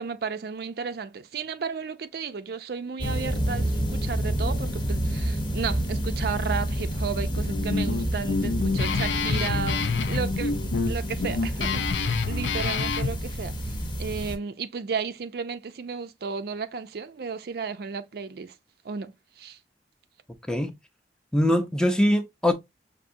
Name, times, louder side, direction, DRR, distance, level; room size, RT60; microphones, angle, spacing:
voice 1, 0.0-10.5 10.9-18.5 18.8-19.6, right 5 dB, 60° right, 0.4 m, -33 dB
sound 1, 3.0-14.4, right 1 dB, 25° left, 0.8 m, -29 dB
Guitar, 7.4-13.1, left 4 dB, 85° left, 0.5 m, -28 dB
voice 2, 21.3-22.5, left 1 dB, 5° left, 0.5 m, -22 dB
5.8 x 2.6 x 2.6 m
head